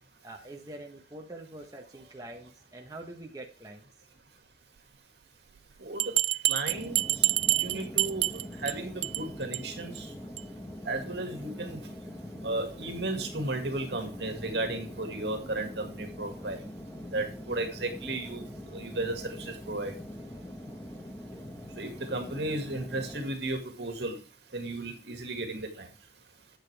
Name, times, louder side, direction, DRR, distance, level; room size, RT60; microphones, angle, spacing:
voice 1, 0.2-3.8, right 1 dB, 20° right, 1 dB, 1.0 m, -45 dB
voice 2, 5.8-6.1 6.5-7.0 7.6-8.2 8.6-10.1 10.9-11.8 12.4-16.6 17.1-18.4 18.7-19.9 21.8-24.2 24.5-25.9, right 2 dB, 70° right, 5 dB, 2.0 m, -34 dB
Bell, 6.0-8.7 9.0-9.2 9.5-9.6 10.0-10.1 10.4-10.5, right 17 dB, 85° right, 0.3 m, -27 dB
sound 1, 6.6-23.3, equal, 10° left, 1.1 m, -43 dB
10.5 x 7.2 x 3.4 m, 0.36 s
head